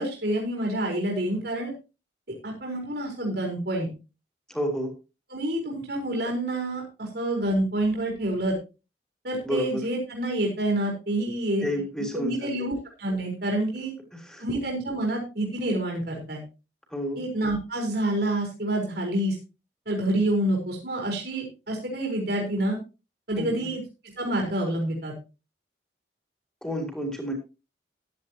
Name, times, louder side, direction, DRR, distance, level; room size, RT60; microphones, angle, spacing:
voice 1, 0.0-1.7 2.3-3.9 5.3-8.5 9.2-11.6 12.1-12.7 13.0-13.9 14.4-16.4 17.2-19.3 19.9-22.8 23.3-23.8 24.2-25.1, right 1 dB, 65° right, -1 dB, 4.4 m, -27 dB
voice 2, 4.5-4.9 9.4-9.8 11.6-12.5 14.1-14.4 16.9-17.2 23.4-23.7 26.6-27.3, equal, 5° left, 2 dB, 3.6 m, -30 dB
14.5 x 11.0 x 2.9 m, 0.30 s
head